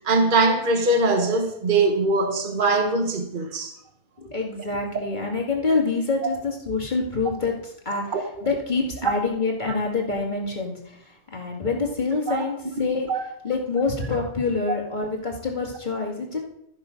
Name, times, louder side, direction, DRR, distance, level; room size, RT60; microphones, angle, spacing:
voice 1, 0.0-3.7 8.1-8.2 9.0-9.1 12.3-12.4 13.1-13.2, right 3 dB, 40° right, 1.4 m, -21 dB
voice 2, 4.2-13.1 13.4-16.4, left 3 dB, 35° left, 2.3 m, -26 dB
13.0 x 7.1 x 5.2 m
omnidirectional pair, 1.4 m